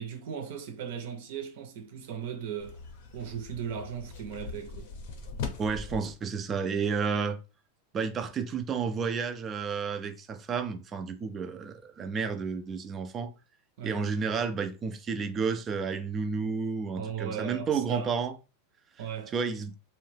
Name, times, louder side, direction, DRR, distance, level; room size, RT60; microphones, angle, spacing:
voice 1, 0.0-2.8 3.1-4.9 13.8-14.0 17.0-18.1 19.0-19.3, right 7 dB, 55° right, 0.6 m, -37 dB
sound 1, 2.6-6.0, left 4 dB, 50° left, 0.6 m, -40 dB
voice 2, 5.6-7.4 7.9-13.3 13.8-18.3 19.3-19.7, right 5 dB, 20° right, 0.3 m, -31 dB
2.7 x 2.2 x 3.2 m
supercardioid pair, 170°, 0 cm